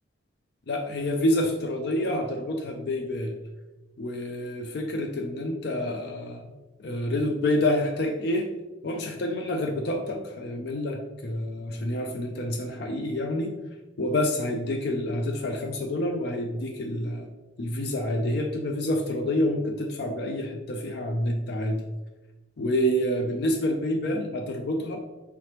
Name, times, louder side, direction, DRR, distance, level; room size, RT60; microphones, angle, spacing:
voice 1, 0.7-3.4 4.0-6.5 6.8-8.5 8.8-13.6 14.0-17.3 17.6-21.8 22.6-25.0, left 1 dB, 55° left, 3 dB, 0.4 m, -28 dB
4.8 x 3.2 x 2.9 m, 1.1 s
head